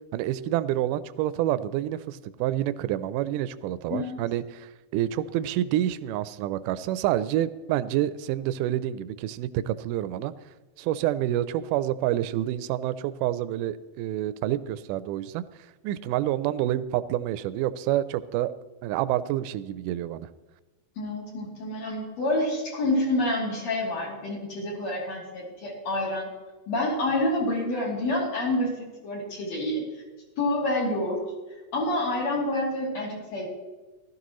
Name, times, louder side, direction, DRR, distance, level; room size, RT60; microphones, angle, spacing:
voice 1, 0.1-10.3 10.8-15.4 15.8-18.5 18.8-20.3, right 13 dB, 80° right, 14 dB, 2.0 m, -28 dB
voice 2, 21.0-26.3 26.7-29.9 30.4-31.2 31.7-33.5, left 1 dB, 55° left, -3 dB, 4.1 m, -28 dB
17.0 x 13.0 x 3.1 m, 1.2 s
omnidirectional pair, 3.9 m